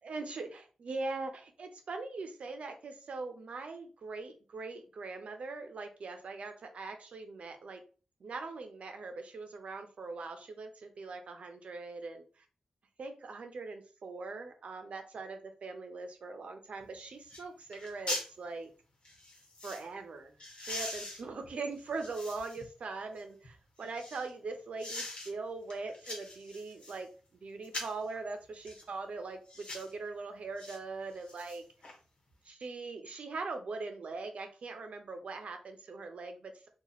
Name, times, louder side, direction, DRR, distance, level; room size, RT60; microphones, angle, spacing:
voice 1, 0.0-7.8 8.2-12.2 13.0-18.7 19.6-20.3 20.6-27.1 27.4-31.6 32.5-36.7, right 3 dB, 70° right, 6 dB, 0.7 m, -41 dB
sound 1, 16.8-16.9 17.3-17.5 17.7-18.3 19.0-19.8 20.4-22.7 23.2-24.3 24.8-25.3 25.7-27.0 27.6-28.0 28.6-28.9 29.5-29.9 30.6-30.8 31.1-32.0 32.3-32.4, left 2 dB, 55° left, 1.2 m, -42 dB
3.0 x 2.4 x 3.9 m, 0.37 s
wide cardioid pair, 130°, 2 cm